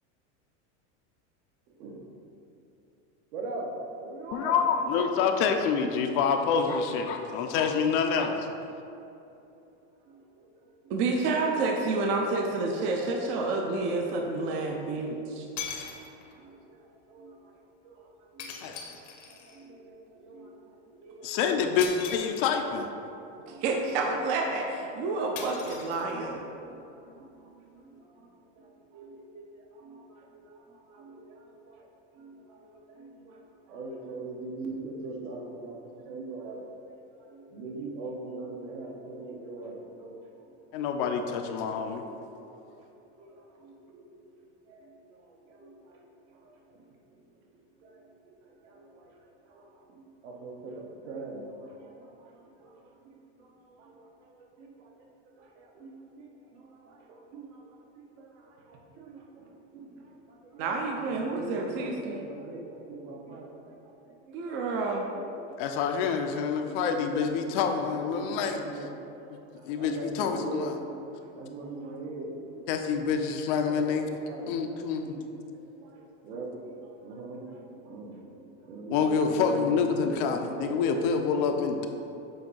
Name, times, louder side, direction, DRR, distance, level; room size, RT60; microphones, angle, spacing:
voice 1, 1.7-2.0 3.3-4.6 10.0-11.0 15.2-15.6 15.9-19.0 19.2-21.6 22.4-23.7 24.7-25.5 25.8-26.0 26.6-40.9 41.6-65.8 66.6-72.8 73.7-80.8, right 2 dB, 70° right, -1 dB, 1.3 m, -44 dB
voice 2, 4.3-8.3 18.6-18.8 21.2-22.9 40.7-42.0 65.6-68.6 69.6-70.7 72.7-74.1 74.5-75.1 78.9-81.9, left 6 dB, 50° left, 5 dB, 0.5 m, -27 dB
voice 3, 10.9-15.5 23.6-26.4 60.6-62.2 64.3-65.1, right 3 dB, 35° right, 1 dB, 0.5 m, -29 dB
sound 1, 12.8-12.9 15.0-15.1 15.6-16.4 18.4-19.6 21.8-22.8 25.4-26.4, left 7 dB, 80° left, 1.1 m, -40 dB
7.7 x 2.6 x 5.3 m, 2.8 s
supercardioid pair, 170°, 36 cm